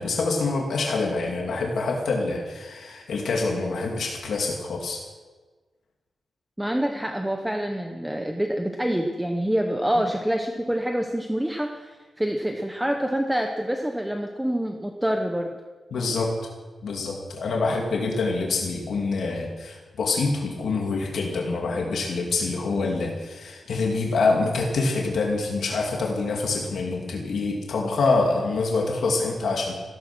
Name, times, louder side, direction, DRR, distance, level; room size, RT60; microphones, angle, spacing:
voice 1, 0.0-5.1 15.9-16.3 16.8-29.7, left 3 dB, 70° left, -1 dB, 2.6 m, -26 dB
voice 2, 6.6-15.5, equal, 5° right, 3 dB, 0.9 m, -26 dB
16.0 x 14.0 x 6.2 m, 1.4 s
wide cardioid pair, 165°, 0 cm